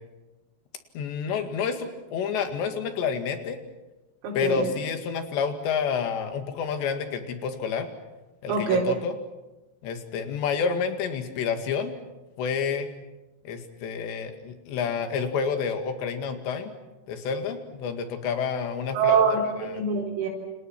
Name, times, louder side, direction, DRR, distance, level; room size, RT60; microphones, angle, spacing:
voice 1, 1.0-3.6 4.3-7.9 8.4-9.2 9.8-11.9 12.4-12.9 13.5-16.7 17.1-19.2 19.6-19.8, left 6 dB, 65° left, 6 dB, 4.0 m, -29 dB
voice 2, 4.2-4.7 8.5-8.9 19.0-20.3, right 5 dB, 90° right, -3 dB, 6.9 m, -24 dB
29.0 x 28.5 x 6.1 m, 1.1 s
omnidirectional pair, 6.0 m